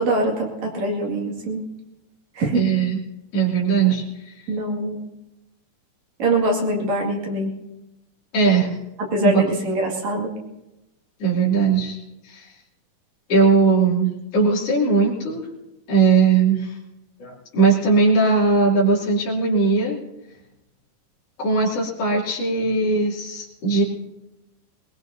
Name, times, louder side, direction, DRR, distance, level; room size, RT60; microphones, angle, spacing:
voice 1, 0.0-1.6 2.4-2.7 4.5-5.0 6.2-7.5 9.1-10.3, right 1 dB, 60° right, -1 dB, 3.5 m, -23 dB
voice 2, 2.5-3.0 3.3-4.3 8.3-8.8 9.2-9.4 11.2-12.0 12.3-12.5 13.3-15.4 15.9-16.7 17.2-20.0 21.4-23.8, right 4 dB, 50° left, -5 dB, 3.7 m, -19 dB
21.0 x 20.5 x 2.7 m, 0.95 s
omnidirectional pair, 3.6 m